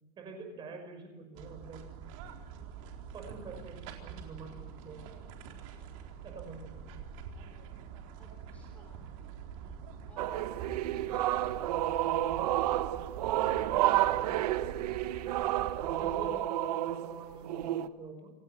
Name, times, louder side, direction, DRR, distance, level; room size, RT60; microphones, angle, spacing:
voice 1, 0.2-1.9 3.1-5.1 6.2-7.0 9.6-9.7 14.3-14.5 15.4-18.3, right 3 dB, 20° right, 5 dB, 6.0 m, -46 dB
sound 1, 1.3-16.3, right 7 dB, 55° right, 4.2 m, -46 dB
voice 2, 8.2-9.1 10.1-11.8, left 1 dB, 5° left, 2 dB, 3.9 m, -55 dB
sound 2, 10.2-17.9, right 14 dB, 75° right, 1.3 m, -30 dB
28.5 x 17.5 x 9.0 m, 1.0 s
supercardioid pair, 170°, 20 cm